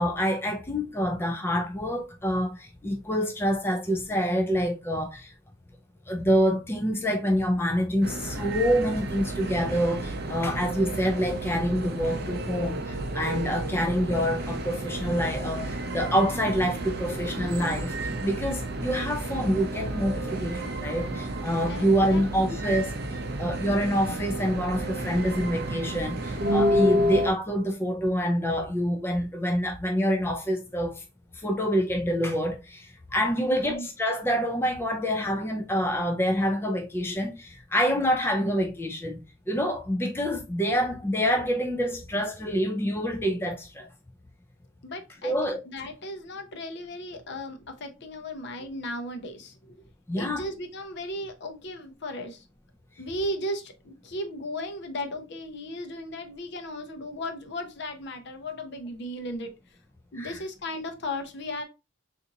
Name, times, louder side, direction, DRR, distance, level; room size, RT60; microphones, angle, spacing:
voice 1, 0.0-5.3 6.1-31.0 31.3-39.2 39.5-43.9 45.2-45.6 50.1-50.4 60.1-60.4, equal, 10° left, 0.4 m, -27 dB
sound 1, 8.0-27.3, right 1 dB, 50° right, 0.6 m, -31 dB
voice 2, 21.7-22.5 33.4-33.9 44.8-45.3 45.7-49.7 50.2-52.4 53.0-59.5 60.1-61.6, left 1 dB, 60° left, 0.7 m, -36 dB
3.8 x 2.6 x 2.7 m
head